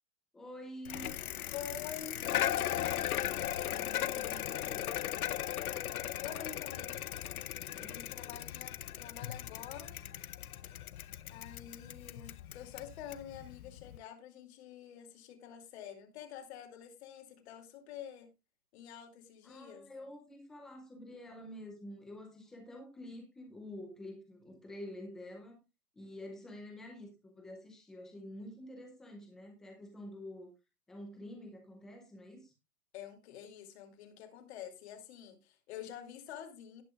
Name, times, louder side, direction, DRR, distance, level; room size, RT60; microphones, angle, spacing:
voice 1, 0.3-1.1 3.6-4.9 7.7-8.1 19.4-25.6 25.9-30.5 30.9-32.5, left 1 dB, ahead, 0.4 m, -48 dB
Bicycle, 0.9-14.0, left 11 dB, 70° left, 0.8 m, -38 dB
voice 2, 1.5-2.9 6.2-7.0 7.8-10.0 11.3-18.3 18.7-19.9 32.9-36.8, left 9 dB, 45° left, 2.6 m, -47 dB
17.5 x 6.0 x 2.4 m
hypercardioid pair, 135°, 46 cm